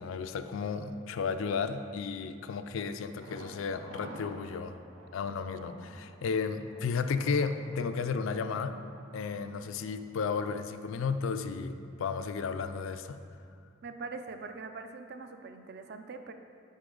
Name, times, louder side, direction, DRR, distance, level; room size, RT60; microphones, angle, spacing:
voice 1, 0.0-4.8 5.1-8.8 9.1-13.2, left 5 dB, 70° left, 9 dB, 0.3 m, -33 dB
Thunder, 3.2-11.0 11.3-11.4 11.8-11.9, right 1 dB, 80° right, 0.8 m, -51 dB
voice 2, 13.8-16.3, right 4 dB, 50° right, 7 dB, 0.4 m, -42 dB
8.1 x 5.3 x 3.8 m, 2.3 s
head